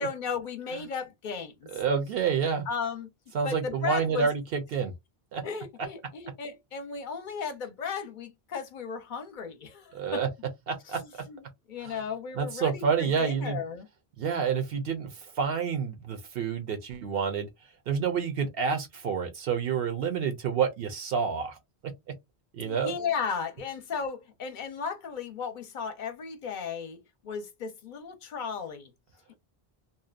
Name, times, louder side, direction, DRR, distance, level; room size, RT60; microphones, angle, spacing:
voice 1, 0.0-1.7 2.7-3.1 3.4-4.3 5.4-10.2 10.8-13.9 22.6-28.9, left 6 dB, 55° left, 0.7 m, -35 dB
voice 2, 1.7-2.7 3.3-4.9 5.3-5.4 9.9-10.3 10.7-11.0 11.8-12.0 12.4-13.6 14.2-15.1 15.4-17.5 17.9-21.6 22.5-22.9, right 6 dB, 75° right, 0.8 m, -28 dB
2.7 x 2.1 x 2.4 m
omnidirectional pair, 1.0 m